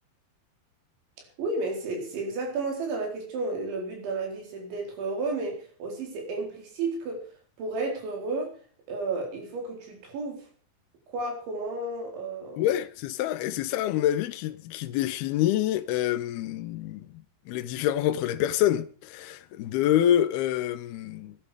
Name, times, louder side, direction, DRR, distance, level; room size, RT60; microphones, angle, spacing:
voice 1, 1.4-7.2 7.6-8.6 8.9-10.4 11.1-12.7, right 3 dB, 85° right, 6.7 m, -32 dB
voice 2, 12.6-21.4, left 12 dB, 75° left, 2.5 m, -27 dB
19.0 x 12.0 x 5.2 m
omnidirectional pair, 5.1 m